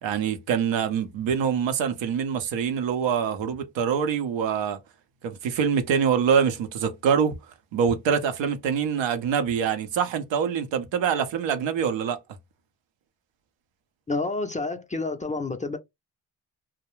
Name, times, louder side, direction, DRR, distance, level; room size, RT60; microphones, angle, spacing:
voice 1, 0.0-4.8 5.2-7.4 7.7-12.2, right 7 dB, 75° right, 0.7 m, -25 dB
voice 2, 14.1-15.8, left 3 dB, 20° left, 0.4 m, -29 dB
2.3 x 2.0 x 3.0 m
supercardioid pair, 55°, 45 cm